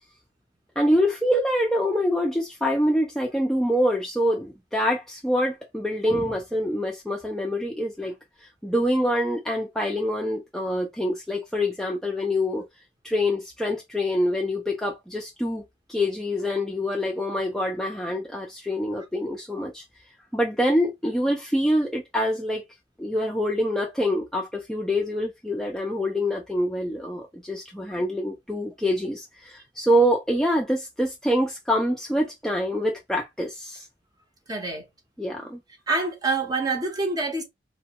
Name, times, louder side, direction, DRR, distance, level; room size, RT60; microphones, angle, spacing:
voice 1, 0.8-8.1 8.4-12.6 13.0-15.6 15.9-19.8 20.3-22.6 23.0-33.9 35.2-35.6, equal, ahead, 0.4 m, -25 dB
voice 2, 34.5-34.8 35.9-37.4, right 3 dB, 25° right, 0.8 m, -26 dB
3.1 x 2.1 x 2.8 m
head